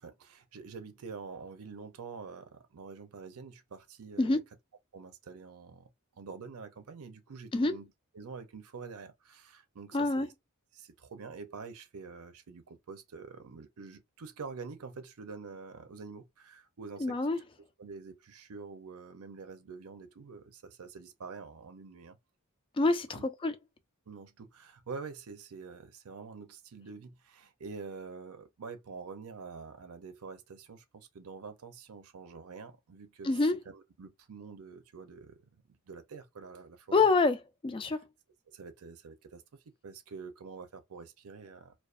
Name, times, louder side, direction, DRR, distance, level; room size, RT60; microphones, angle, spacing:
voice 1, 0.0-4.4 4.9-7.9 8.1-10.3 10.7-17.2 17.8-22.2 23.1-23.2 24.1-33.4 33.7-37.1 38.5-41.7, right 5 dB, 75° right, 0.5 m, -46 dB
voice 2, 9.9-10.3 17.0-17.4 22.8-23.5 33.2-33.6 36.9-37.4 37.6-38.1, left 3 dB, 25° left, 0.3 m, -26 dB
2.4 x 2.3 x 2.4 m
head